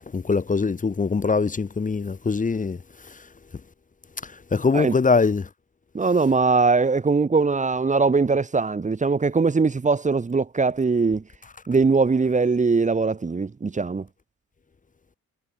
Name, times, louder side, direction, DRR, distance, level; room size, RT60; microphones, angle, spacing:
voice 1, 0.0-2.8 3.1-3.2 4.2-5.5, left 4 dB, 25° left, 1.5 m, -23 dB
voice 2, 5.9-11.2 11.7-14.0, right 4 dB, 25° right, 1.4 m, -21 dB
cardioid pair, 90°, 30 cm